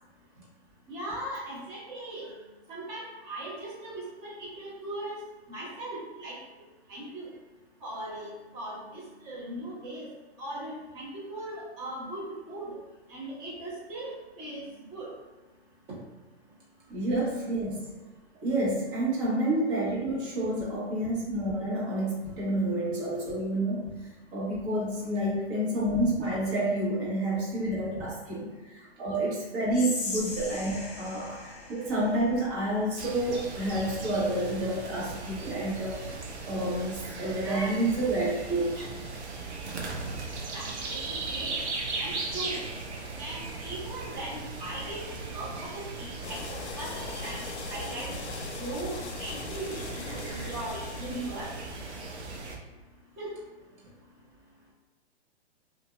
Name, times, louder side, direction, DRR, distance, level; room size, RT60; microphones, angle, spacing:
voice 1, 0.9-2.3 2.7-5.2 5.5-6.4 6.9-7.3 7.8-10.1 10.4-12.8 13.1-15.1 37.4-37.7 40.5-41.6 42.0-42.6 43.2-47.4 47.7-48.1 48.6-51.5 53.2-53.3, right 1 dB, 25° right, -6 dB, 1.1 m, -39 dB
voice 2, 16.9-17.9 18.4-23.8 24.3-38.9, right 1 dB, 50° right, -5 dB, 1.4 m, -29 dB
Whispering, 29.7-32.9, left 2 dB, 40° left, 0.8 m, -38 dB
sound 1, 33.0-52.6, right 3 dB, 80° right, 0.7 m, -38 dB
sound 2, 46.2-51.7, left 5 dB, 75° left, 0.5 m, -41 dB
2.7 x 2.6 x 2.4 m, 1.2 s
hypercardioid pair, 130°, 34 cm